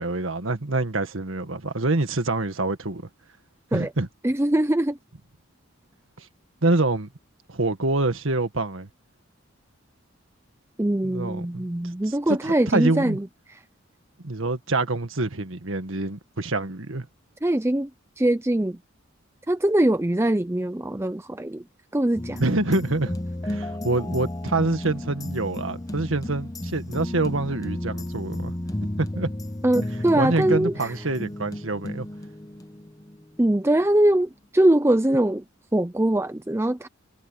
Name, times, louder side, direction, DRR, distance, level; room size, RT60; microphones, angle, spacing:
voice 1, 0.0-3.0 3.7-4.1 6.2-6.3 6.6-7.1 7.5-8.9 11.0-11.7 12.1-12.2 12.4-13.2 14.2-17.1 22.4-23.2 23.4-28.5 29.0-29.3 30.2-32.1, right 2 dB, 80° right, 1.7 m, -26 dB
voice 2, 4.2-5.0 10.8-13.6 17.4-17.9 18.2-18.8 19.5-21.6 21.9-22.4 29.6-30.9 33.4-35.4 35.7-36.9, right 1 dB, 10° right, 0.5 m, -22 dB
sound 1, 22.1-33.2 33.5-33.6, left 1 dB, 15° left, 0.8 m, -33 dB
head